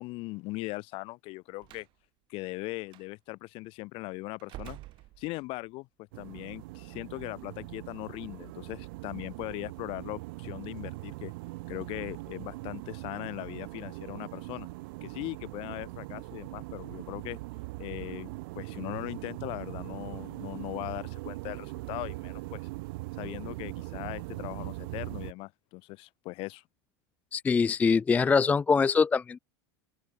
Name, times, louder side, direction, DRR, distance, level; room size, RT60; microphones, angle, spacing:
voice 1, 0.0-1.9 2.3-4.8 5.2-5.9 6.2-11.3 11.7-14.7 15.0-17.4 17.8-22.6 23.2-26.6, left 23 dB, 50° left, 5.4 m, -39 dB
Slam, 1.6-1.9 2.9-3.1 4.4-5.7, right 18 dB, 45° right, 2.5 m, -47 dB
sound 1, 6.1-25.3, right 23 dB, 70° right, 3.7 m, -41 dB
voice 2, 27.3-29.4, left 5 dB, 10° left, 0.4 m, -23 dB
open air
supercardioid pair, 150°, 12 cm